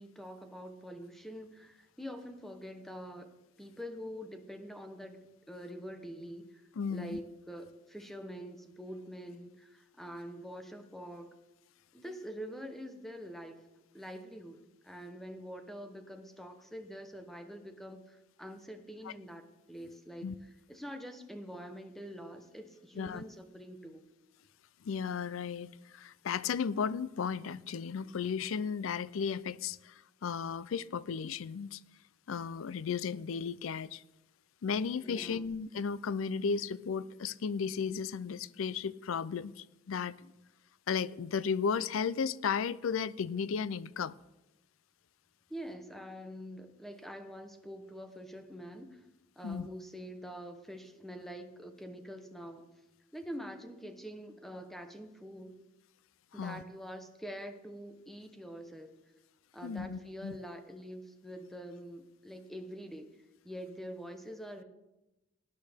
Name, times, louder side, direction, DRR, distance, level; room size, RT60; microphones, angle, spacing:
voice 1, 0.0-3.3 3.6-6.6 6.9-11.3 11.9-13.7 13.9-24.0 35.0-35.5 45.5-49.0 49.4-52.7 53.1-55.6 56.3-58.9 59.5-64.6, equal, ahead, 0.9 m, -45 dB
voice 2, 6.8-7.2 19.0-19.1 20.2-20.4 23.0-23.2 24.8-31.8 32.3-34.0 34.6-40.3 40.9-44.1 49.4-49.7 56.3-56.6 59.6-60.4, left 6 dB, 80° left, 0.4 m, -34 dB
18.5 x 10.0 x 3.5 m
head